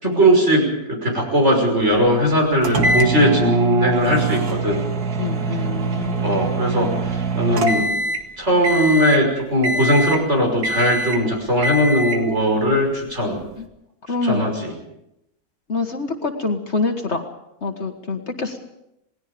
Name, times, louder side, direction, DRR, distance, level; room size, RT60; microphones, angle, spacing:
voice 1, 0.0-4.8 6.2-7.9 8.4-13.4 14.2-14.7, equal, 45° right, 1 dB, 6.1 m, -19 dB
sound 1, 2.6-8.3 8.6-9.2 9.6-10.3 10.6-11.2 11.6-12.3, right 2 dB, 80° right, 2.4 m, -23 dB
voice 2, 5.2-6.5 13.6-13.7 14.1-14.5 15.7-17.3 17.6-18.6, left 3 dB, 45° left, 4 dB, 1.9 m, -25 dB
28.0 x 19.5 x 5.2 m, 0.83 s
omnidirectional pair, 1.6 m